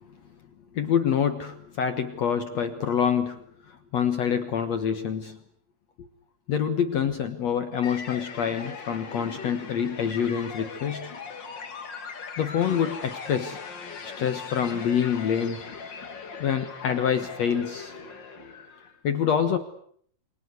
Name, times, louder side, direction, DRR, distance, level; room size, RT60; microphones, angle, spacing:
voice 1, 0.7-5.4 6.5-11.1 12.4-13.6 14.0-15.6 16.4-17.9 19.0-19.6, left 8 dB, 75° left, 8 dB, 1.5 m, -26 dB
sound 1, 7.8-19.0, left 5 dB, 40° left, 1.6 m, -40 dB
28.5 x 23.5 x 8.1 m, 0.64 s
omnidirectional pair, 5.2 m